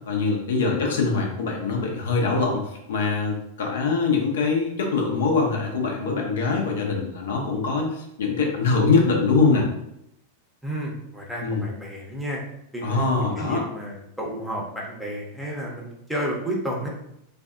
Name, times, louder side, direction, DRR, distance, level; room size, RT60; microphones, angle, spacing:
voice 1, 0.1-9.7 11.4-11.6 12.8-13.6, left 4 dB, 60° left, 1 dB, 0.5 m, -23 dB
voice 2, 10.6-12.4 12.7-16.9, right 1 dB, ahead, -3 dB, 0.7 m, -31 dB
3.3 x 2.2 x 2.4 m, 0.79 s
figure-of-eight pair, 90°, 0 cm